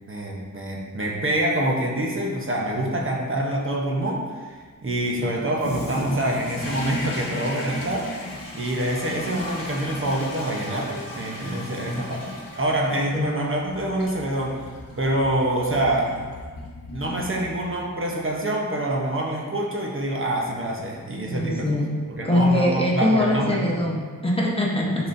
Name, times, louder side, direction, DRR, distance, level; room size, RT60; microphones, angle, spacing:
voice 1, 0.1-4.5 4.8-12.3 12.6-14.7 15.0-16.1 16.9-21.7 22.1-23.7 24.9-25.1, right 1 dB, 40° right, -1 dB, 0.9 m, -26 dB
Toilet flush, 5.6-17.9, left 2 dB, 75° left, 1.3 m, -36 dB
voice 2, 21.3-21.9 22.2-25.1, left 1 dB, 15° left, -3 dB, 1.1 m, -22 dB
10.5 x 4.1 x 2.6 m, 1.5 s
wide cardioid pair, 120°, 33 cm